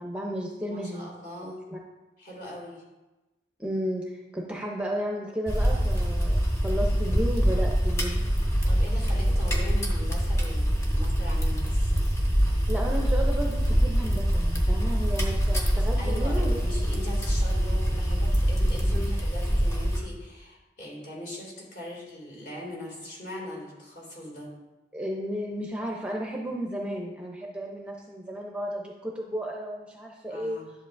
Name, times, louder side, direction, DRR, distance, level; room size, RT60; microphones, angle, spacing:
voice 1, 0.0-1.1 1.4-1.8 3.6-8.3 12.7-16.6 18.9-19.1 24.9-30.6, equal, 5° right, -1 dB, 0.6 m, -33 dB
voice 2, 0.6-1.6 2.2-2.8 8.6-11.9 15.8-24.5 30.3-30.7, left 1 dB, 50° left, -3 dB, 2.4 m, -40 dB
sound 1, 5.5-20.0, equal, 15° left, 0.9 m, -24 dB
10.5 x 7.3 x 2.6 m, 1.1 s
head